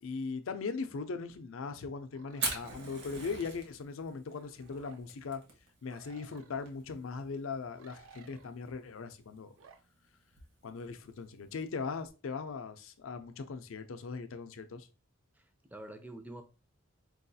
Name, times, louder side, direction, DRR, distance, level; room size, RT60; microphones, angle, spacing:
voice 1, 0.0-5.4 5.8-9.6 10.6-14.9, left 4 dB, 75° left, 0.5 m, -39 dB
sound 1, 2.1-3.1 4.3-5.0 5.9-6.7 7.7-8.5 9.6-9.8, right 4 dB, 80° right, 0.5 m, -56 dB
Fire, 2.3-12.1, right 3 dB, 55° right, 1.1 m, -44 dB
voice 2, 15.3-16.4, right 1 dB, 10° right, 0.4 m, -47 dB
4.6 x 2.3 x 2.6 m
head